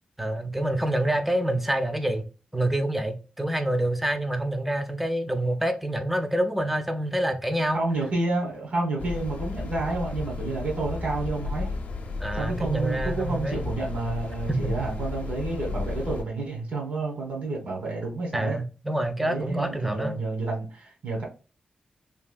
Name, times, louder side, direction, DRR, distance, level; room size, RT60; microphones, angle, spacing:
voice 1, 0.2-2.3 2.5-7.8 12.2-13.7 14.5-14.7 18.3-20.1, right 1 dB, 5° right, 0.4 m, -27 dB
voice 2, 7.7-11.8 12.3-18.6 19.2-21.2, right 2 dB, 65° right, 1.3 m, -30 dB
sound 1, 9.0-16.2, left 3 dB, 70° left, 0.6 m, -33 dB
3.3 x 2.5 x 2.2 m
cardioid pair, 85°, 3 cm